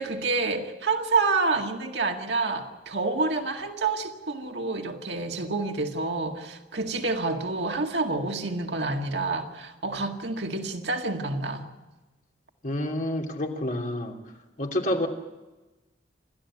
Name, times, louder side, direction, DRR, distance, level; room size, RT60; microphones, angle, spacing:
voice 1, 0.0-11.7, right 3 dB, 75° right, 3 dB, 2.0 m, -28 dB
voice 2, 12.6-14.2 14.6-15.1, left 1 dB, 50° left, 1 dB, 3.0 m, -28 dB
28.0 x 13.5 x 8.3 m, 1.1 s
head